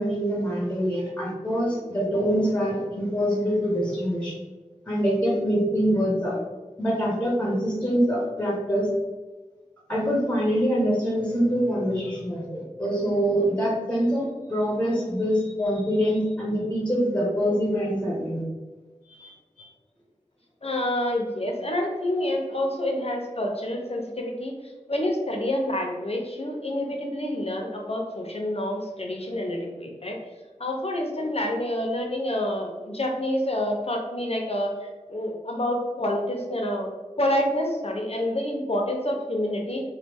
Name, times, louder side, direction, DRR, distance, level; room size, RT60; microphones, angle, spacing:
voice 1, 0.0-4.3 4.9-6.4 6.8-8.9 9.9-18.4 19.1-19.7, equal, 10° left, -4 dB, 0.9 m, -25 dB
voice 2, 20.6-30.2 30.6-36.9 37.2-39.8, left 1 dB, 50° left, 1 dB, 0.6 m, -28 dB
3.1 x 2.2 x 3.5 m, 1.3 s
wide cardioid pair, 45°, 13 cm